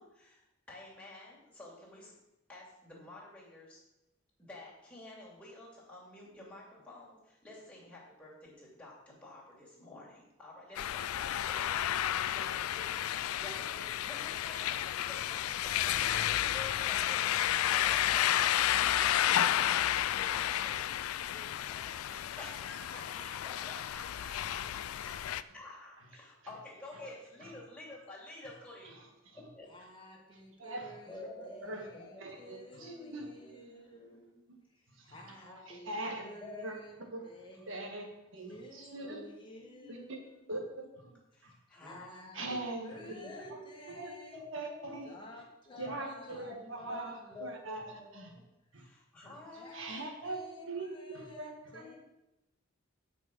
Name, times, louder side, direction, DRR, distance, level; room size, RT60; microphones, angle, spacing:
voice 1, 0.0-2.1 2.5-3.8 4.4-11.7 12.3-18.6 19.2-21.0 21.7-21.9 22.4-29.0 29.3-29.7 31.1-32.3 32.8-34.4 35.3-36.8 38.9-39.2 39.6-40.5 41.3-42.6 42.9-45.0 45.7-48.4 48.8-50.7 51.1-51.3 51.8-52.0, left 2 dB, 5° left, -6 dB, 2.9 m, -50 dB
sound 1, 10.7-25.4, left 11 dB, 85° left, 0.3 m, -31 dB
voice 2, 21.3-22.4 29.7-34.2 34.7-36.9 37.2-37.8 38.4-40.4 41.5-44.4 45.0-47.6 49.5-52.0, equal, 25° left, -1 dB, 1.7 m, -53 dB
voice 3, 30.6-30.9 31.6-31.9 32.2-33.3 34.9-35.2 35.7-36.3 36.6-36.7 37.1-37.3 37.7-38.1 38.3-39.2 39.9-40.0 40.5-41.1 41.4-41.5 42.3-43.6 43.9-44.1 44.5-45.1 45.7-47.1 47.4-48.4 48.7-48.9 49.2-49.3 49.7-50.4 50.7-50.9 51.1-51.8, right 2 dB, 65° right, 2 dB, 1.7 m, -42 dB
9.2 x 5.4 x 6.2 m, 0.93 s
head